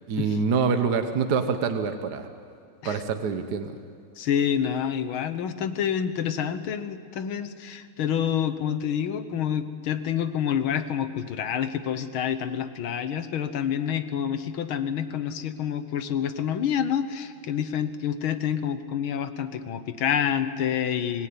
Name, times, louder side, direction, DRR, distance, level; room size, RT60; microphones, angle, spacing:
voice 1, 0.1-2.3 2.8-3.7, right 5 dB, 60° right, 7 dB, 1.5 m, -25 dB
voice 2, 4.2-21.3, left 8 dB, 85° left, 11 dB, 2.0 m, -28 dB
25.0 x 18.5 x 9.6 m, 2.4 s
omnidirectional pair, 2.2 m